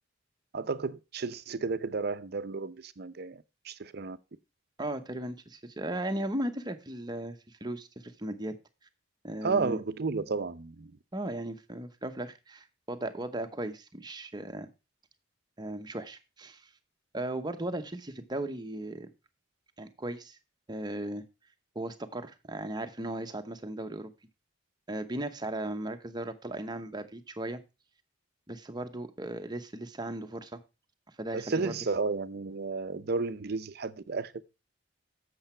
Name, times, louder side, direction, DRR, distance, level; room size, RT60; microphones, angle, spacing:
voice 1, 0.5-4.2 9.4-11.0 31.3-34.3, right 4 dB, 55° right, 0.6 m, -32 dB
voice 2, 4.8-8.5 9.2-9.8 11.1-14.7 15.6-16.7 17.1-19.1 19.8-20.4 20.7-21.2 21.7-24.1 24.9-27.6 28.5-30.6 31.2-31.7, right 1 dB, 20° right, 0.9 m, -36 dB
8.0 x 6.9 x 4.3 m
head